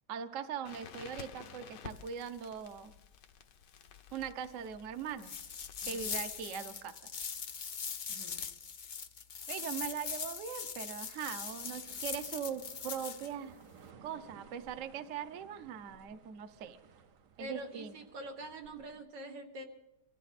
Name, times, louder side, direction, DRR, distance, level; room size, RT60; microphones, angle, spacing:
voice 1, 0.1-2.9 4.1-5.4 5.9-6.9 9.5-13.6 14.0-16.8 17.4-17.9, right 8 dB, 55° right, 10 dB, 1.0 m, -41 dB
Crackle, 0.7-6.4, left 8 dB, 80° left, 1.6 m, -52 dB
sound 1, 5.2-13.3, left 6 dB, 65° left, 0.4 m, -41 dB
voice 2, 8.1-8.4 17.4-19.6, right 1 dB, 90° right, 3 dB, 2.3 m, -45 dB
sound 2, 11.5-19.0, right 6 dB, 70° right, 1.4 m, -59 dB
24.0 x 14.5 x 4.1 m, 1.0 s
omnidirectional pair, 1.8 m